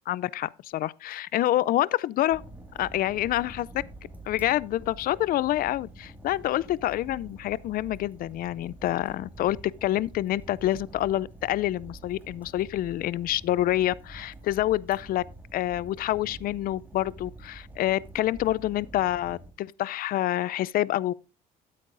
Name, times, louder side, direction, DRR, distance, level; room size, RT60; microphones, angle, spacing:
voice 1, 0.1-2.4 2.8-3.7 4.3-15.2 15.5-21.1, left 14 dB, 60° left, 0.4 m, -27 dB
Fire, 2.3-19.5, right 2 dB, 10° right, 1.9 m, -47 dB
13.0 x 8.7 x 2.5 m
cardioid pair, 110°, 17 cm